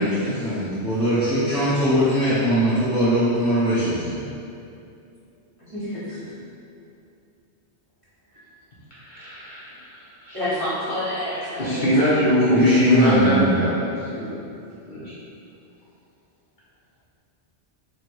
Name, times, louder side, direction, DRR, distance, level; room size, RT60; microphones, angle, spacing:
voice 1, 0.0-4.2 12.5-13.6, equal, 5° left, -14 dB, 0.7 m, -21 dB
voice 2, 5.6-6.4 8.3-8.4 10.3-12.1, left 1 dB, 30° right, -11 dB, 1.1 m, -29 dB
voice 3, 8.9-10.4 11.6-13.9 14.1-14.3 14.9-15.1, equal, 45° left, -10 dB, 1.1 m, -21 dB
3.2 x 2.9 x 4.5 m, 2.6 s
omnidirectional pair, 1.2 m